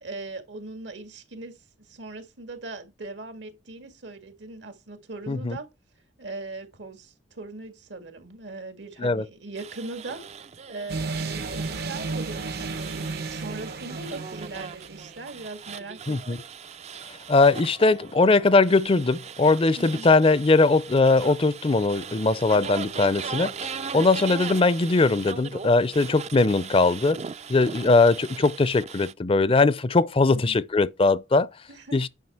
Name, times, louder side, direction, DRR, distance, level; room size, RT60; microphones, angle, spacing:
voice 1, 0.0-5.7 6.2-16.4 19.8-20.1 23.9-24.1 30.3-30.6 31.7-32.0, right 3 dB, 80° right, 1.9 m, -40 dB
voice 2, 5.3-5.6 9.0-9.2 16.1-16.4 17.3-27.2 27.5-31.5 31.9-32.1, left 3 dB, 30° left, 0.5 m, -20 dB
sound 1, 9.6-29.1, right 6 dB, 35° right, 0.4 m, -39 dB
sound 2, 10.9-15.3, right 3 dB, 55° right, 0.8 m, -33 dB
9.5 x 5.6 x 4.4 m
head